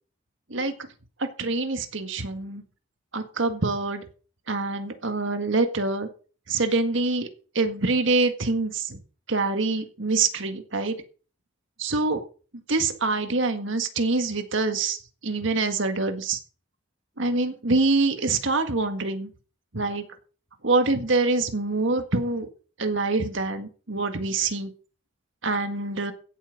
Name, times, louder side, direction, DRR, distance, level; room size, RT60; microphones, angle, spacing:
voice 1, 1.2-2.6 3.1-4.0 4.5-6.1 6.5-7.3 7.6-9.0 9.3-11.0 11.8-12.2 12.7-15.0 15.2-16.4 17.2-19.3 19.7-20.1 20.6-22.5 22.8-24.7 25.4-26.1, right 3 dB, 65° right, 7 dB, 1.8 m, -25 dB
16.0 x 8.0 x 5.3 m, 0.39 s
head